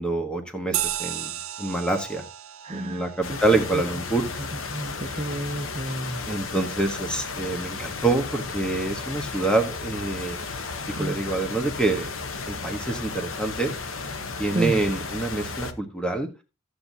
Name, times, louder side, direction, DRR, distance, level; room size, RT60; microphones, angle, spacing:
voice 1, 0.0-1.3 1.6-2.2 2.7-4.2 6.3-10.4 10.9-12.1 12.5-13.7 14.4-16.3, right 2 dB, 5° left, 4 dB, 1.2 m, -26 dB
sound 1, 0.7-5.6, right 11 dB, 85° right, 0.7 m, -35 dB
voice 2, 2.6-3.4 3.7-3.8 4.4-6.2 11.0-11.2 14.5-14.8, right 1 dB, 30° right, 5 dB, 0.6 m, -31 dB
sound 2, 3.2-15.7, left 4 dB, 70° left, 1.0 m, -34 dB
14.0 x 7.8 x 2.8 m, 0.29 s
head